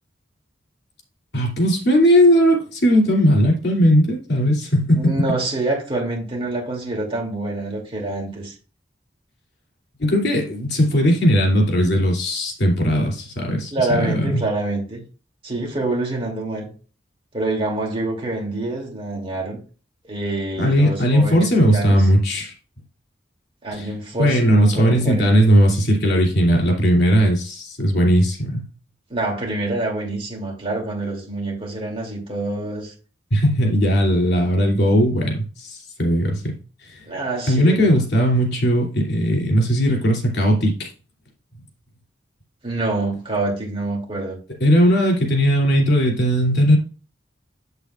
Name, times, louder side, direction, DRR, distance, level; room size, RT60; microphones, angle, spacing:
voice 1, 1.3-5.3 10.0-14.4 20.6-22.5 23.7-23.9 24.2-28.7 33.3-36.6 36.8-37.0 37.5-40.9 44.6-46.8, equal, 60° left, 2.9 m, -18 dB
voice 2, 5.0-8.5 13.7-15.0 15.4-16.7 17.3-19.6 20.0-22.0 23.6-25.4 29.1-32.9 37.1-38.0 42.6-44.4, right 2 dB, 30° right, 2.8 m, -26 dB
8.1 x 7.8 x 2.5 m
head